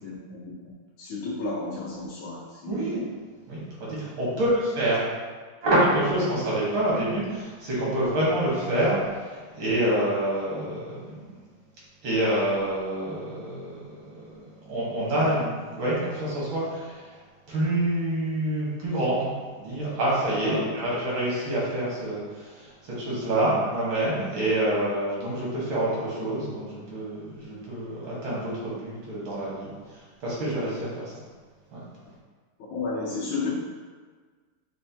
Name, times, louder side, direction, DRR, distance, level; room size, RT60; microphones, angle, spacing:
voice 1, 0.0-3.0 4.3-4.4 20.4-20.7 32.7-33.5, left 3 dB, 85° left, -6 dB, 1.3 m, -33 dB
voice 2, 2.7-3.0 3.5-5.0 5.6-11.4 12.0-14.4 14.7-17.1 17.5-19.3 19.6-29.7 30.2-30.9 31.7-31.8, right 1 dB, 80° right, -7 dB, 2.0 m, -27 dB
6.1 x 2.1 x 2.8 m, 1.5 s
omnidirectional pair, 2.1 m